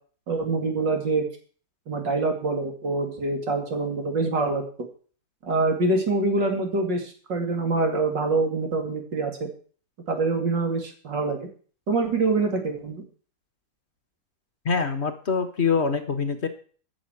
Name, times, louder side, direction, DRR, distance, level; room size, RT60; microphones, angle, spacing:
voice 1, 0.3-1.2 1.9-4.6 5.4-9.5 10.1-11.5 11.9-13.0, right 3 dB, 75° right, 3 dB, 3.2 m, -25 dB
voice 2, 14.6-16.5, left 5 dB, 40° left, 8 dB, 1.4 m, -24 dB
11.0 x 6.4 x 8.9 m, 0.43 s
omnidirectional pair, 2.0 m